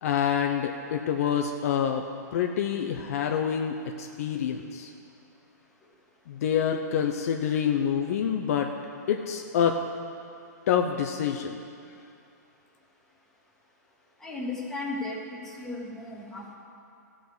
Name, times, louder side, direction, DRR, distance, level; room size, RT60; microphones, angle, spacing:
voice 1, 0.0-2.0 2.3-4.9 6.3-8.7 9.1-9.8 10.7-11.6, left 8 dB, 55° left, 4 dB, 0.7 m, -27 dB
voice 2, 14.2-16.5, left 2 dB, 5° left, -4 dB, 1.7 m, -35 dB
13.0 x 5.0 x 8.0 m, 2.6 s
hypercardioid pair, 140°, 10 cm